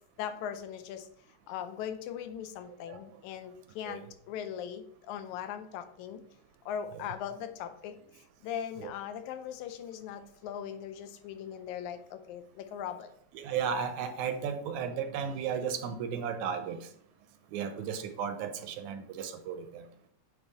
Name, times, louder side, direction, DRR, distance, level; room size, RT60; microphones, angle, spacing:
voice 1, 0.2-1.1 1.5-6.2 6.7-13.1, left 9 dB, 85° left, 9 dB, 2.0 m, -40 dB
voice 2, 13.3-16.8 17.5-19.9, right 7 dB, 80° right, 8 dB, 1.9 m, -34 dB
8.8 x 3.2 x 3.9 m, 0.66 s
omnidirectional pair, 3.3 m